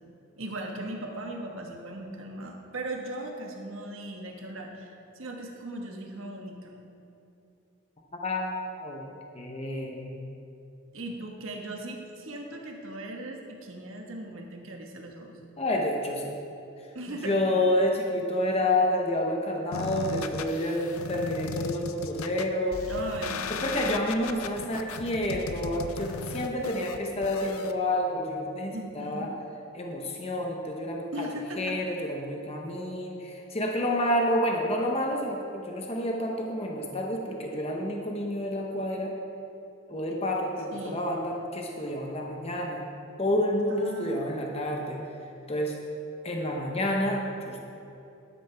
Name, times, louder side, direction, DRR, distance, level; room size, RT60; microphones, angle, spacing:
voice 1, 0.4-6.8 10.9-15.4 16.9-17.4 22.9-23.8 28.7-29.3 31.1-31.8 40.7-41.1 43.7-44.4, right 1 dB, 70° right, 1 dB, 1.5 m, -38 dB
voice 2, 8.2-9.1 9.3-10.2 15.6-16.4 17.2-22.9 23.6-29.3 29.7-31.3 31.6-39.1 39.9-42.9 43.2-45.0 45.5-45.7 46.2-47.6, left 1 dB, 30° left, 0 dB, 0.9 m, -29 dB
sound 1, 19.7-27.7, left 4 dB, 85° left, 0.5 m, -36 dB
11.5 x 11.0 x 3.4 m, 2.9 s
head